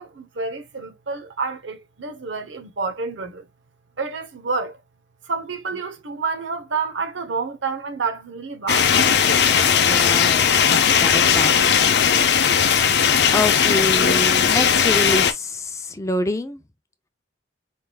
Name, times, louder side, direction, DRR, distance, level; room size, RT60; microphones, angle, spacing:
voice 1, 0.0-3.5 4.0-4.8 5.3-8.9 9.6-9.8, right 4 dB, 90° right, 0.9 m, -29 dB
sound 1, 8.7-15.3, left 7 dB, 60° left, 0.6 m, -17 dB
voice 2, 9.7-12.0 13.3-16.6, left 2 dB, 15° left, 0.5 m, -27 dB
4.5 x 3.5 x 2.2 m
head